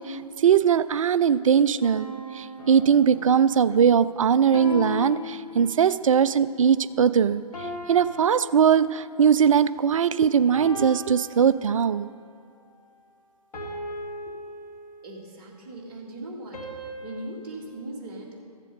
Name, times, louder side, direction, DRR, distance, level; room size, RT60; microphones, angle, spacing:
voice 1, 0.0-2.1 2.3-7.4 7.9-12.1, right 7 dB, 55° right, 15 dB, 0.4 m, -20 dB
sound 1, 1.8-3.5 4.5-6.0 7.5-9.2 10.5-12.0 13.5-15.3 16.5-17.6, left 2 dB, 70° left, 2.3 m, -38 dB
sound 2, 2.6-8.0, right 1 dB, 20° left, 2.5 m, -50 dB
voice 2, 15.0-16.7 17.0-18.4, right 1 dB, 35° right, -3 dB, 2.1 m, -39 dB
14.0 x 7.4 x 5.2 m, 2.4 s
figure-of-eight pair, 130°, 20 cm